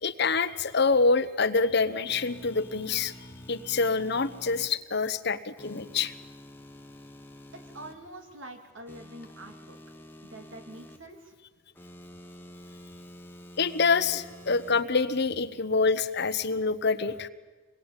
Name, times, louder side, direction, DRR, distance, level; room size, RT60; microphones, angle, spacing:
voice 1, 0.0-3.1 3.5-6.1 13.6-17.3, left 4 dB, 55° left, 12 dB, 1.1 m, -26 dB
sound 1, 2.1-4.7 5.6-7.9 8.9-11.0 11.7-14.8, equal, 10° left, 1.5 m, -48 dB
voice 2, 7.5-9.8 10.2-11.3, right 1 dB, 70° right, 5 dB, 3.1 m, -46 dB
26.5 x 21.0 x 9.2 m, 1.3 s
head